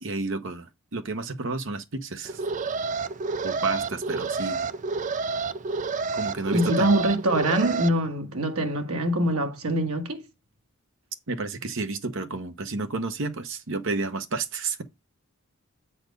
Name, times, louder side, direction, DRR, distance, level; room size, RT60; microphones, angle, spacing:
voice 1, 0.0-2.4 3.4-4.7 6.2-7.0 11.3-14.8, right 3 dB, 60° right, 1.1 m, -31 dB
Alarm, 2.3-7.9, right 4 dB, 35° right, 0.5 m, -29 dB
voice 2, 6.5-10.2, right 1 dB, 80° right, 1.5 m, -24 dB
8.0 x 4.3 x 5.2 m
head